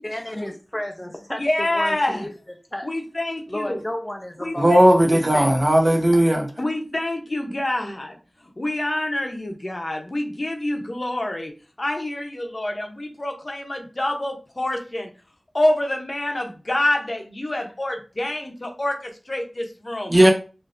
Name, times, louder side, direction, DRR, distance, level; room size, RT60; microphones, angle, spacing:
voice 1, 0.0-2.3 2.7-2.9 3.5-5.5, left 1 dB, 20° left, 0.4 m, -32 dB
voice 2, 1.4-2.3 2.8-3.8 4.4-4.8 6.6-8.2 8.6-11.5 11.8-15.1 15.5-20.1, left 1 dB, 50° left, 0.7 m, -26 dB
voice 3, 4.6-6.5 20.1-20.3, right 1 dB, 40° right, 0.9 m, -16 dB
3.4 x 2.6 x 2.5 m
wide cardioid pair, 40°, 0 cm